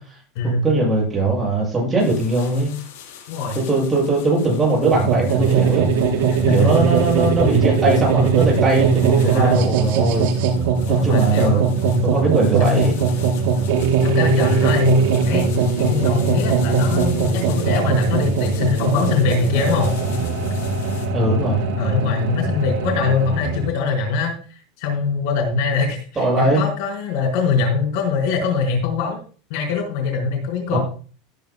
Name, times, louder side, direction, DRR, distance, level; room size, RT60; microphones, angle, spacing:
voice 1, 0.6-2.7 3.7-5.9 6.5-10.3 10.9-12.9 21.1-21.7 26.2-26.6 30.7-30.8, right 2 dB, 15° right, -3 dB, 6.6 m, -20 dB
sound 1, 2.0-21.1, left 9 dB, 85° left, 6.4 m, -42 dB
voice 2, 3.3-3.6 6.5-6.7 7.4-7.7 9.2-9.6 10.9-12.1 12.6-12.9 14.0-15.5 15.8-19.9 21.8-24.3 24.8-29.2 29.5-30.8, left 4 dB, 60° left, 3 dB, 4.3 m, -22 dB
sound 2, 4.8-23.7, right 5 dB, 60° right, 4.3 m, -20 dB
17.5 x 10.5 x 2.2 m, 0.39 s
supercardioid pair, 155°, 0 cm